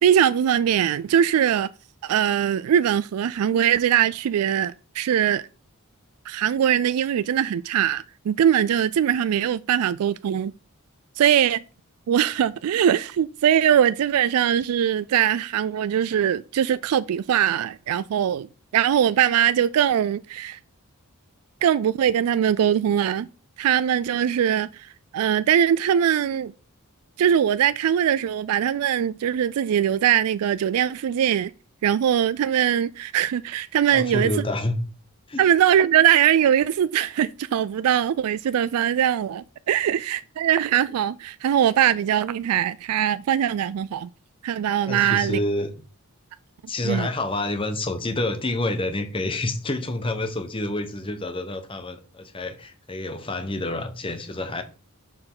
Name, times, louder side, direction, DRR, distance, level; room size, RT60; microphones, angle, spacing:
voice 1, 0.0-1.7 2.0-5.4 6.3-10.5 11.2-11.6 12.1-18.5 18.7-20.6 21.6-23.3 23.6-26.5 27.2-31.5 31.8-34.3 35.4-44.1 44.4-45.4 46.8-47.1, right 9 dB, 80° right, 0.3 m, -21 dB
voice 2, 33.9-34.8 35.3-35.4 44.9-45.7 46.7-54.6, left 2 dB, 25° left, 0.9 m, -28 dB
6.5 x 6.0 x 3.9 m
head